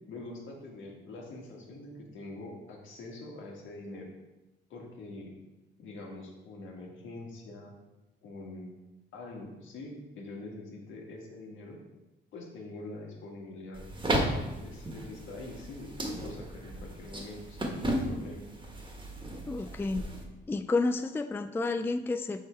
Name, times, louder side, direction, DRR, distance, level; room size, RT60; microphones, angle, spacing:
voice 1, 0.1-4.1 4.7-5.4 5.8-7.7 8.2-8.7 9.1-11.8 12.3-13.8 14.1-18.4, left 2 dB, 75° left, 0 dB, 1.7 m, -44 dB
sound 1, 13.7-20.2, right 1 dB, 25° right, 1.4 m, -35 dB
voice 2, 19.5-20.0 20.5-22.5, left 3 dB, 10° left, 9 dB, 0.3 m, -30 dB
5.6 x 5.3 x 4.4 m, 1.0 s
cardioid pair, 90°, 20 cm